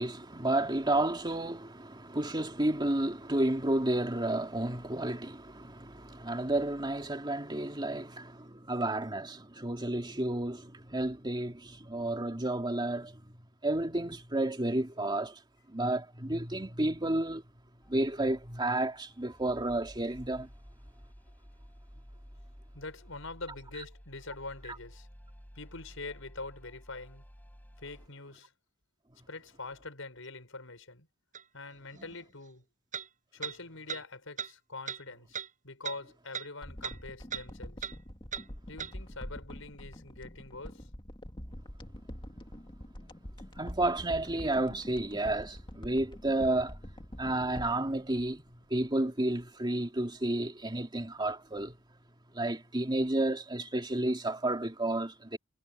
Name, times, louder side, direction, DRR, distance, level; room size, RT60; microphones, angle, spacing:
voice 1, 0.0-13.3 13.6-15.4 15.7-17.4 17.9-20.5 31.9-32.0 43.6-46.8 47.2-51.8 52.3-55.4, right 1 dB, 25° right, 2.6 m, -31 dB
sound 1, 17.8-28.1, equal, 10° left, 4.7 m, -53 dB
voice 2, 22.7-25.1 25.5-27.2 27.8-28.5 29.3-31.1 31.5-32.7 33.3-37.9 38.7-40.9, left 3 dB, 80° left, 6.5 m, -44 dB
sound 2, 31.3-31.4 32.9-33.1 33.4-33.6 33.9-34.0 34.4-34.5 34.9-35.0 35.3-35.5 35.8-36.0 36.3-36.5 36.8-37.0 37.3-37.5 37.8-38.0 38.3-38.5 38.8-38.9, right 8 dB, 40° right, 6.5 m, -37 dB
sound 3, 36.6-49.1 49.4-49.5, equal, 25° left, 2.4 m, -45 dB
head